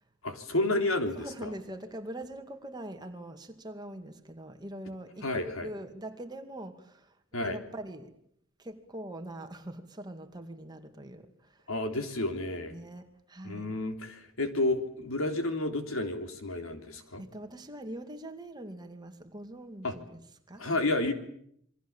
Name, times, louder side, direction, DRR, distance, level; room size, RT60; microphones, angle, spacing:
voice 1, 0.2-1.5 5.2-5.7 7.3-7.6 11.7-12.7 13.4-17.2 19.8-20.0 20.6-21.1, left 2 dB, 80° left, 3.6 m, -31 dB
voice 2, 1.2-5.3 5.6-7.2 7.4-8.2 8.6-11.7 12.7-13.7 17.2-20.8, right 1 dB, 20° right, 2.3 m, -43 dB
28.0 x 23.5 x 7.4 m
head